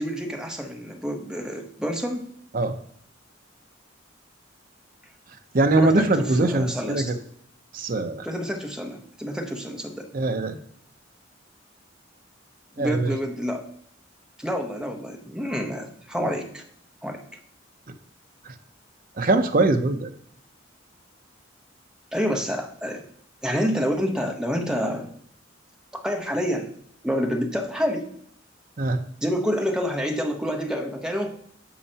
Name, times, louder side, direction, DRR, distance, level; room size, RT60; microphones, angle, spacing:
voice 1, 0.0-2.3 5.8-7.1 8.2-10.1 12.8-13.7 14.4-16.6 17.0-17.2 22.1-23.0 23.4-25.1 25.9-26.7 27.0-28.1 29.2-31.4, equal, 5° right, 3 dB, 0.8 m, -28 dB
voice 2, 5.5-7.2 7.7-8.3 10.1-10.6 12.8-13.1 18.5-18.6 19.2-20.1 28.8-29.0, right 2 dB, 45° right, 7 dB, 0.6 m, -22 dB
8.6 x 5.5 x 2.8 m, 0.63 s
head